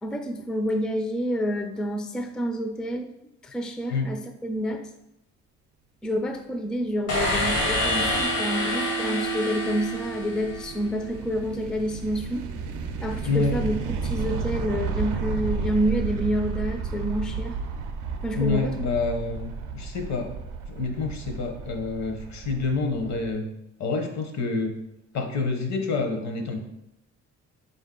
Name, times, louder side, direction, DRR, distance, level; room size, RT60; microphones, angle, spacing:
voice 1, 0.0-3.1 3.4-4.9 6.0-12.4 13.0-17.5 18.2-18.7, equal, 5° left, 5 dB, 0.3 m, -28 dB
sound 1, 7.1-10.9, equal, 85° left, 1.4 m, -27 dB
sound 2, 8.2-23.3, right 5 dB, 85° right, 0.5 m, -33 dB
voice 2, 13.3-13.6 18.3-20.3 20.7-23.5 23.8-24.7 25.1-26.6, left 4 dB, 65° left, 4 dB, 0.8 m, -27 dB
4.0 x 2.7 x 3.7 m, 0.85 s
cardioid pair, 90°, 30 cm